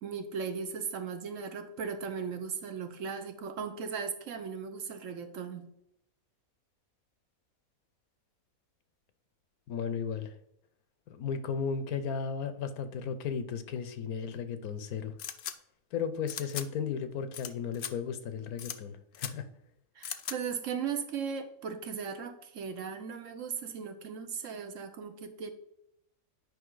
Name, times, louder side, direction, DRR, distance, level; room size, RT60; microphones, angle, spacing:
voice 1, 0.0-5.7 19.9-25.5, right 6 dB, 65° right, 7 dB, 1.1 m, -37 dB
voice 2, 9.7-10.3 11.1-15.2 15.9-19.5, left 6 dB, 85° left, 11 dB, 1.3 m, -35 dB
sound 1, 15.2-15.5 16.3-16.7 17.3-17.5 17.7-17.9 18.6-18.8 19.1-19.3 20.0-20.4, left 9 dB, 60° left, 0.7 m, -38 dB
9.3 x 5.2 x 3.9 m, 0.78 s
omnidirectional pair, 1.5 m